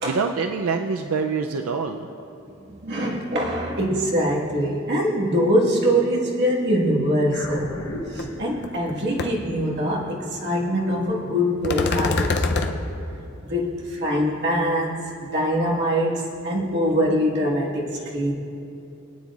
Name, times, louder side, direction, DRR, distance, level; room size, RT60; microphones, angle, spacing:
voice 1, 0.0-2.1, right 5 dB, 90° right, 4 dB, 0.5 m, -25 dB
voice 2, 2.6-7.8 8.1-12.8 13.5-18.3, equal, 55° right, -3 dB, 1.6 m, -23 dB
sound 1, 7.3-11.9, left 1 dB, 70° left, 1.2 m, -39 dB
sound 2, 8.2-8.3 8.6-8.9 9.2-9.3 11.6-12.7, left 3 dB, 55° left, 0.6 m, -23 dB
21.5 x 9.3 x 2.4 m, 2.8 s
head